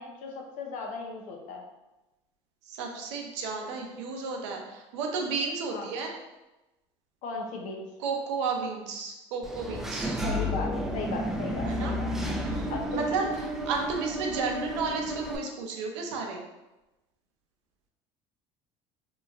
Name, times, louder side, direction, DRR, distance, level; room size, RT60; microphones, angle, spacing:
voice 1, 0.0-1.6 5.7-5.9 7.2-7.9 10.2-12.1 12.7-13.0, left 3 dB, 60° left, 1 dB, 0.7 m, -36 dB
voice 2, 2.7-6.2 8.0-10.2 11.6-11.9 12.4-16.4, right 4 dB, 85° right, 2 dB, 0.5 m, -33 dB
Engine / Mechanisms, 9.4-15.4, equal, 5° right, 0.3 m, -32 dB
3.0 x 2.4 x 2.3 m, 1.0 s
supercardioid pair, 90°, 15 cm